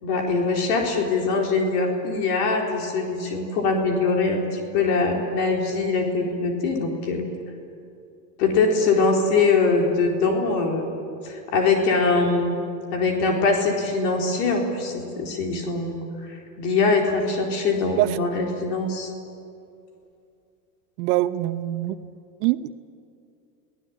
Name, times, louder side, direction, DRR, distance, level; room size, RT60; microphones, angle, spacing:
voice 1, 0.0-7.2 8.4-10.9 11.2-12.6 12.9-16.0 16.3-19.1, left 4 dB, 70° left, 1 dB, 4.3 m, -22 dB
voice 2, 21.0-22.0 22.4-22.7, right 16 dB, 70° right, 12 dB, 1.0 m, -23 dB
29.5 x 18.5 x 8.6 m, 2.6 s
supercardioid pair, 110°, 49 cm